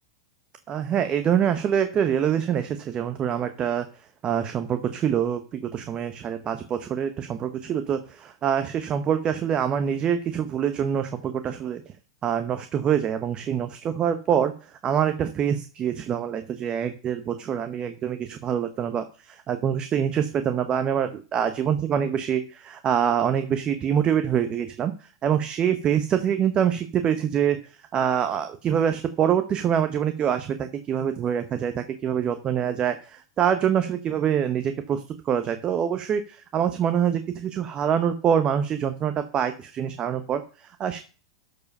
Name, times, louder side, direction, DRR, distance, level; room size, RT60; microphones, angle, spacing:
voice 1, 0.7-3.9 4.2-11.8 12.2-41.0, right 8 dB, 30° right, 9 dB, 0.9 m, -25 dB
13.0 x 4.9 x 5.4 m, 0.37 s
hypercardioid pair, 125°, 3 cm